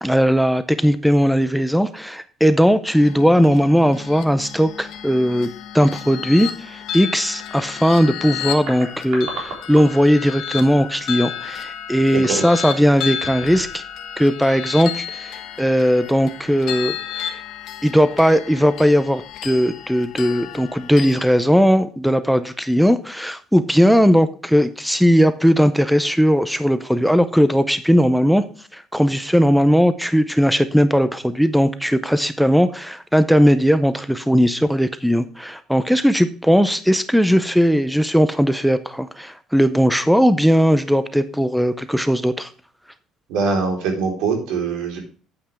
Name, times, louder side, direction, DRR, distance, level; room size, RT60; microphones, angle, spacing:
voice 1, 0.0-13.8 14.2-17.4 17.8-28.4 28.7-42.5, equal, ahead, 12 dB, 0.5 m, -18 dB
sound 1, 2.9-21.4, left 9 dB, 55° left, 1.4 m, -32 dB
sound 2, 4.8-5.1 8.1-8.2 8.4-10.2 10.4-10.6 11.3-11.6 12.1-12.3 13.1-13.9 14.2-14.3, right 3 dB, 60° right, 3.7 m, -36 dB
voice 2, 43.3-45.0, right 4 dB, 85° right, 3 dB, 4.0 m, -22 dB
9.7 x 8.7 x 3.4 m, 0.40 s
cardioid pair, 180°, 0 cm